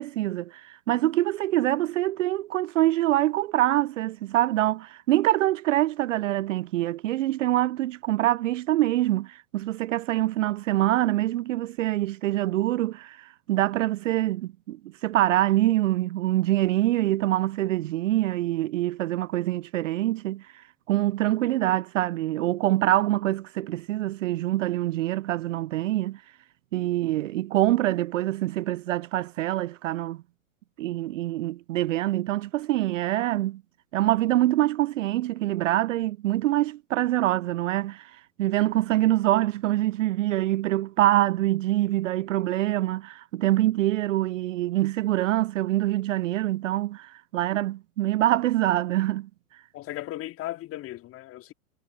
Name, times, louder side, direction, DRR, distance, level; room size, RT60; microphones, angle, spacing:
voice 1, 0.0-26.2 26.7-30.2 30.8-33.6 33.9-49.3, right 15 dB, 60° right, 0.5 m, -25 dB
voice 2, 49.7-51.5, left 15 dB, 30° left, 2.1 m, -36 dB
figure-of-eight pair, 100°, 43 cm